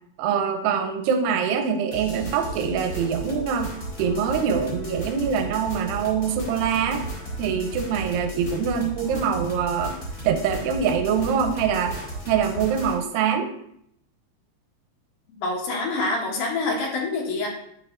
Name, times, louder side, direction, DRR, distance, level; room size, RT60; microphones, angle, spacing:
voice 1, 0.2-3.7 4.0-7.1 7.4-10.0 10.2-11.9 12.3-13.5, right 7 dB, 85° right, 5 dB, 2.7 m, -24 dB
sound 1, 1.9-12.9, right 2 dB, 40° left, 1.2 m, -35 dB
voice 2, 15.3-17.5, left 3 dB, 70° left, -2 dB, 3.0 m, -26 dB
9.4 x 5.5 x 2.5 m, 0.72 s
omnidirectional pair, 4.7 m